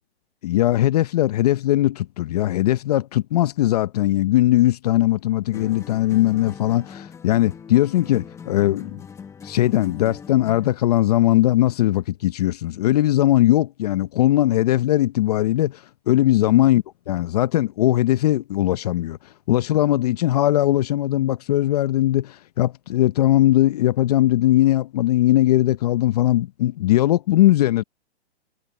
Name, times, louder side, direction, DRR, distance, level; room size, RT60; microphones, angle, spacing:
voice 1, 0.4-9.0 9.4-19.2 19.5-27.8, left 14 dB, 35° left, 0.7 m, -19 dB
sound 1, 5.5-10.9, left 6 dB, 10° left, 1.3 m, -40 dB
hypercardioid pair, 150°, 32 cm